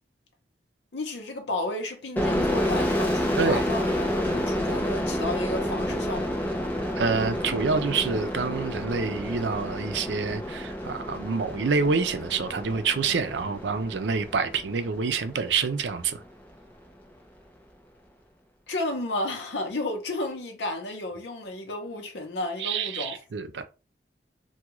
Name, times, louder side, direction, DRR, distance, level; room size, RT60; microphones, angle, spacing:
voice 1, 0.9-6.4 18.7-23.2, left 2 dB, 90° left, 0.7 m, -32 dB
sound 1, 2.2-15.6, equal, 10° left, 0.7 m, -29 dB
voice 2, 7.0-16.2 22.6-23.6, right 5 dB, 85° right, 0.5 m, -27 dB
3.5 x 2.3 x 3.0 m
head